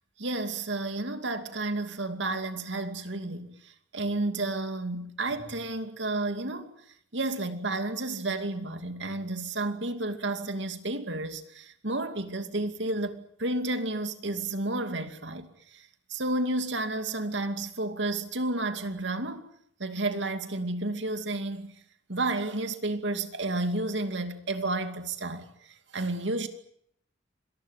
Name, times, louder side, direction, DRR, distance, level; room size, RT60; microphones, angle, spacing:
voice 1, 0.2-6.7 7.1-19.4 19.8-21.7 22.1-26.5, right 2 dB, 80° right, 2.6 m, -31 dB
26.0 x 19.5 x 9.2 m
head